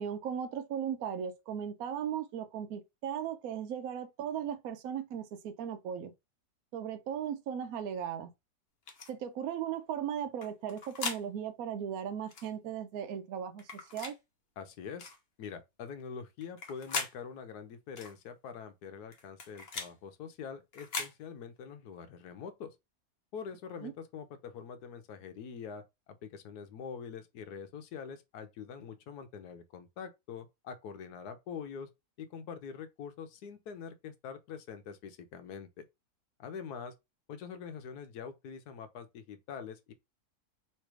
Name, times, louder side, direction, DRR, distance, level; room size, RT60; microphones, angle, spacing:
voice 1, 0.0-6.1 6.7-8.3 9.1-13.6 13.9-14.2 23.8-23.9, right 8 dB, 70° right, 1.0 m, -37 dB
sound 1, 8.9-9.1 10.4-11.2 12.3-12.5 13.6-14.2 15.0-15.2 16.4-17.1 18.0-18.1 19.1-19.9 20.7-21.1, left 4 dB, 45° left, 1.0 m, -39 dB
voice 2, 14.6-15.1 15.4-22.7 23.3-31.9 32.2-35.9 36.4-36.9 37.3-39.9, left 6 dB, 85° left, 1.3 m, -44 dB
3.2 x 3.2 x 4.6 m
omnidirectional pair, 1.6 m